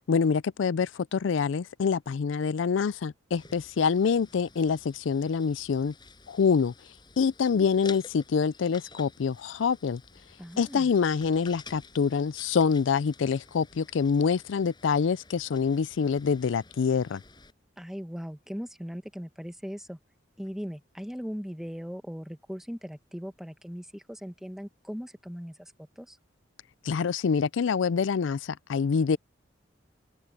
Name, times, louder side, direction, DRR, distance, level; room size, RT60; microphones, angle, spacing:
voice 1, 0.1-5.9 6.3-6.7 7.2-10.0 10.6-17.2 26.8-29.2, left 6 dB, 75° left, 0.4 m, -26 dB
sound 1, 3.3-17.5, left 4 dB, 25° left, 7.6 m, -51 dB
voice 2, 10.4-10.9 17.8-20.0 20.4-26.2, equal, ahead, 1.2 m, -39 dB
open air
head